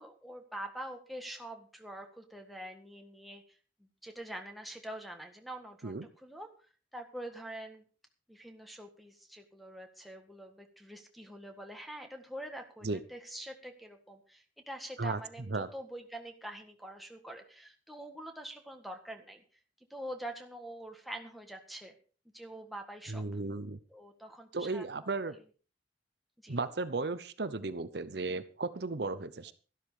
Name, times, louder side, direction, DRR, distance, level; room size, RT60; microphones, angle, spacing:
voice 1, 0.0-3.4 4.0-6.5 6.9-7.8 8.3-19.4 19.9-21.9 22.3-23.3 23.9-24.8 26.4-26.6, right 1 dB, ahead, 3 dB, 1.7 m, -45 dB
voice 2, 23.1-23.8 24.5-25.4 26.5-29.5, right 3 dB, 60° right, 13 dB, 0.8 m, -35 dB
12.5 x 12.0 x 5.0 m, 0.37 s
head